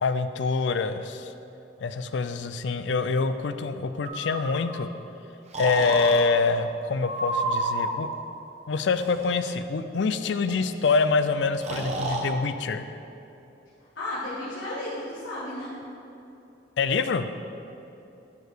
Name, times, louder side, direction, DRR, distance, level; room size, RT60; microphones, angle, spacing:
voice 1, 0.0-1.3 1.8-4.9 5.6-8.1 8.7-12.8 16.8-17.3, left 4 dB, 65° left, 11 dB, 0.4 m, -25 dB
Breathing, 4.0-4.8 5.5-6.2 7.0-8.0 8.9-9.3 10.5-10.6 10.8-11.0 11.6-12.3, right 2 dB, 35° right, 1.0 m, -30 dB
voice 2, 13.9-15.7, left 1 dB, 90° left, -9 dB, 1.7 m, -33 dB
11.0 x 4.7 x 5.0 m, 2.9 s
head